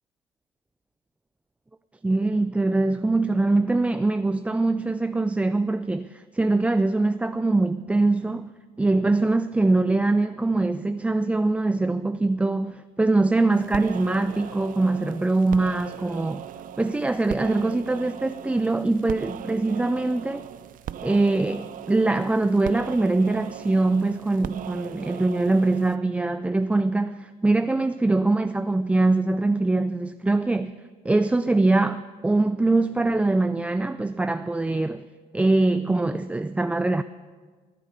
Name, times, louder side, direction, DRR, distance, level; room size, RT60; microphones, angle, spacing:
voice 1, 2.0-8.5 8.8-16.4 16.8-20.5 21.0-35.0 35.3-37.0, right 2 dB, 10° right, 0.3 m, -23 dB
sound 1, 13.5-26.0, right 10 dB, 55° right, 0.6 m, -39 dB
23.0 x 8.4 x 5.5 m
cardioid pair, 110°, 17 cm